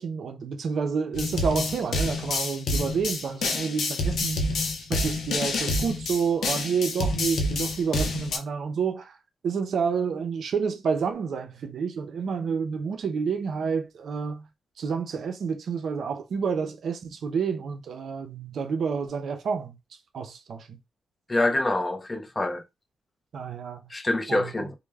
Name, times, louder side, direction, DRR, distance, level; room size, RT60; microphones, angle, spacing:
voice 1, 0.0-9.2 9.4-14.5 14.8-19.8 20.1-20.8 23.3-23.9 24.3-24.7, right 6 dB, 65° right, 0.4 m, -29 dB
sound 1, 1.1-8.4, left 2 dB, 75° left, 0.6 m, -28 dB
voice 2, 21.3-22.6 23.9-24.7, left 2 dB, 20° left, 0.4 m, -26 dB
2.2 x 2.0 x 3.2 m
cardioid pair, 110°, 0 cm